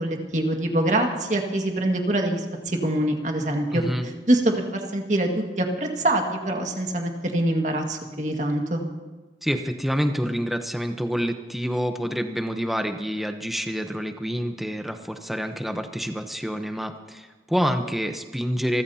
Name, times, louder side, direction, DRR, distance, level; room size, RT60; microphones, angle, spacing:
voice 1, 0.0-8.8, right 1 dB, 40° right, 2 dB, 1.9 m, -24 dB
voice 2, 3.7-4.1 9.4-18.8, equal, ahead, 6 dB, 0.8 m, -27 dB
27.5 x 14.5 x 2.8 m, 1.3 s
head